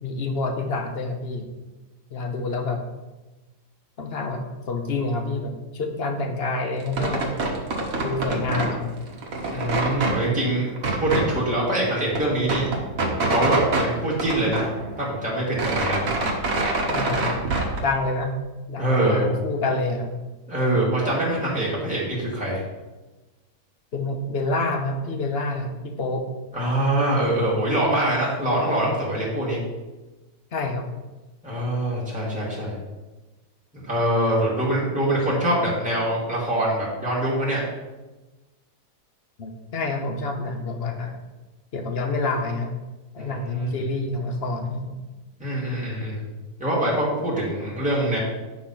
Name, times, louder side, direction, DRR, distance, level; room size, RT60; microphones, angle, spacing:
voice 1, 0.0-1.5 2.1-2.8 4.0-7.3 8.0-8.9 16.9-17.4 17.8-18.3 18.7-20.1 23.9-26.3 30.5-30.8 39.4-41.2 41.7-42.7 43.1-44.9, left 3 dB, 45° left, 4 dB, 1.0 m, -27 dB
sound 1, 6.8-8.8 9.1-10.2 10.8-11.3 11.7-11.8 12.0-13.9 14.2-15.1 15.4-17.8, right 2 dB, 55° right, 1.6 m, -25 dB
voice 2, 9.5-10.7 11.0-12.6 13.3-14.7 15.0-16.0 18.8-19.4 20.5-22.6 26.5-29.6 31.4-32.7 33.8-37.6 43.2-43.7 45.4-46.2 46.6-48.2, right 1 dB, 5° right, -7 dB, 2.5 m, -24 dB
9.1 x 4.1 x 5.7 m, 1.1 s
omnidirectional pair, 1.8 m